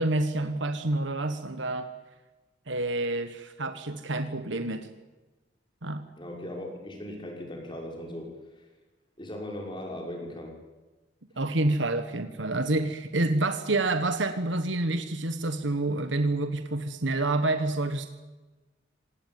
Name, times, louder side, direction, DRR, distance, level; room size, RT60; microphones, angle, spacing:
voice 1, 0.0-1.9 2.7-4.9 5.8-6.0 11.4-18.1, right 2 dB, 90° right, 8 dB, 1.5 m, -28 dB
voice 2, 6.2-8.6 9.2-10.6, left 1 dB, 25° left, 1 dB, 5.8 m, -38 dB
26.0 x 19.0 x 9.4 m, 1.2 s
head